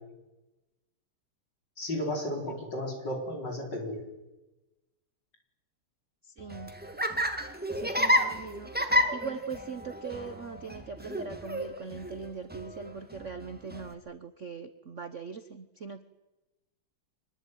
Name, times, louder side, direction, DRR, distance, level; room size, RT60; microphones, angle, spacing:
voice 1, 1.8-4.1, left 1 dB, 50° left, 2 dB, 5.1 m, -34 dB
voice 2, 6.2-6.7 7.7-8.7 9.1-16.0, right 5 dB, 45° right, 10 dB, 1.0 m, -41 dB
Laughter, 6.4-13.9, equal, 5° right, 1.7 m, -31 dB
25.0 x 20.0 x 9.3 m, 1.1 s
omnidirectional pair, 2.4 m